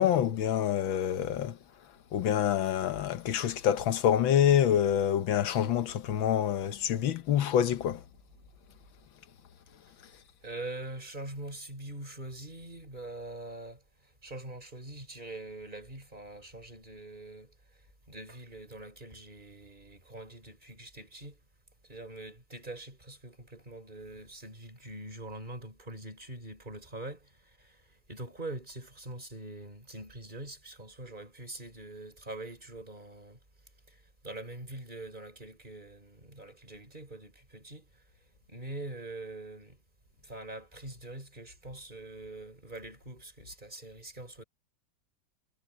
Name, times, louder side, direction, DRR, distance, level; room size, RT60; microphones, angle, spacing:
voice 1, 0.0-1.6 2.1-8.0, left 10 dB, 85° left, 1.8 m, -26 dB
voice 2, 10.4-17.5 18.1-21.4 21.9-33.4 33.9-37.9 38.5-39.8 40.2-44.4, right 2 dB, 25° right, 5.2 m, -44 dB
omnidirectional pair, 2.1 m